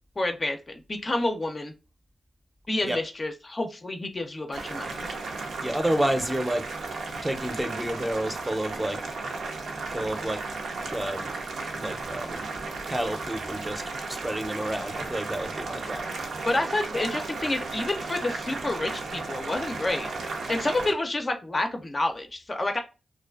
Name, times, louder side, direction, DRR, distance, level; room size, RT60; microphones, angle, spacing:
voice 1, 0.2-1.7 2.7-5.1 16.5-20.1 20.5-22.8, left 2 dB, 40° left, 0.4 m, -29 dB
Boiling, 4.5-20.9, right 3 dB, 85° right, 0.5 m, -34 dB
voice 2, 5.6-6.7 7.2-9.0 9.9-10.4 10.9-11.3 11.8-12.5 12.9-13.8 14.1-16.1, right 1 dB, 15° right, 0.5 m, -30 dB
2.5 x 2.3 x 2.2 m
cardioid pair, 50°, 0 cm